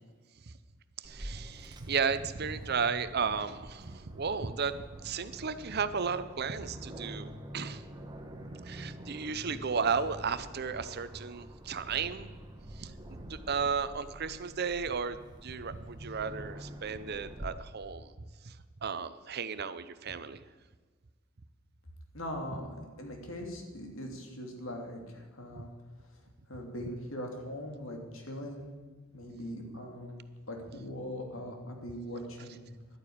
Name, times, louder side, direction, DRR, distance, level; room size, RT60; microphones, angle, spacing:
Aircraft, 1.0-17.5, right 1 dB, 20° right, 1.3 m, -47 dB
voice 1, 1.0-7.8 8.6-12.3 12.8-18.1 18.4-18.5 18.8-20.4, right 5 dB, 55° right, 13 dB, 0.7 m, -34 dB
voice 2, 22.1-25.7 26.5-28.7 29.1-30.2 30.5-32.7, equal, 85° left, 2 dB, 2.6 m, -41 dB
11.5 x 9.5 x 8.6 m, 1.4 s
head